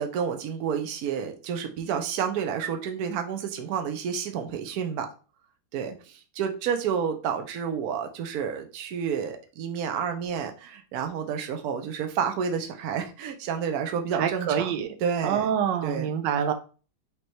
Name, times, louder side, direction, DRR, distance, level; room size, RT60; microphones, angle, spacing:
voice 1, 0.0-5.1 5.7-15.5 15.8-16.1, right 7 dB, 65° right, 5 dB, 1.1 m, -30 dB
voice 2, 14.2-14.9 15.2-16.5, right 8 dB, 90° right, 8 dB, 1.3 m, -26 dB
5.2 x 3.0 x 3.0 m, 0.36 s
omnidirectional pair, 1.9 m